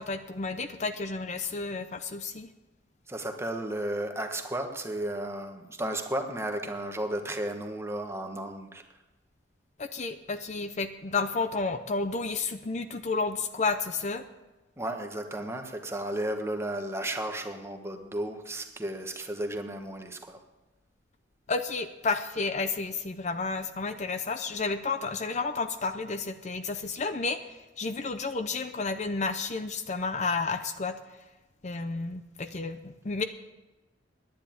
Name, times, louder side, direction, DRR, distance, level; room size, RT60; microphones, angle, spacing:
voice 1, 0.0-2.5 9.8-14.2 21.5-27.4 27.8-31.0 31.6-33.2, left 4 dB, 40° left, 9 dB, 0.7 m, -31 dB
voice 2, 3.1-8.8 14.8-20.4, right 1 dB, 15° right, 5 dB, 1.3 m, -34 dB
10.5 x 9.7 x 9.4 m, 1.1 s
head